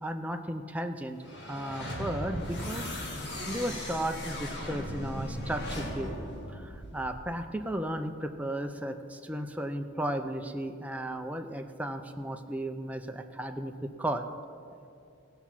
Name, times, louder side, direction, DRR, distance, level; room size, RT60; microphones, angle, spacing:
voice 1, 0.0-2.9 3.1-6.2 6.5-14.3, right 1 dB, 5° right, 5 dB, 0.4 m, -35 dB
sound 1, 1.2-7.4, equal, 55° left, 1.7 m, -38 dB
17.5 x 6.0 x 5.7 m, 2.5 s
head